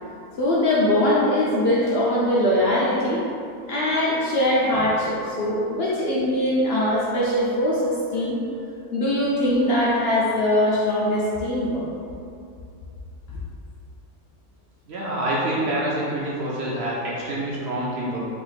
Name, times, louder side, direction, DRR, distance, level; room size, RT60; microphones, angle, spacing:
voice 1, 0.4-3.2 3.7-8.4 8.9-11.8, left 1 dB, 70° left, -7 dB, 0.5 m, -21 dB
voice 2, 14.9-18.3, right 1 dB, 65° right, -6 dB, 0.7 m, -26 dB
2.8 x 2.5 x 3.9 m, 2.5 s
omnidirectional pair, 1.5 m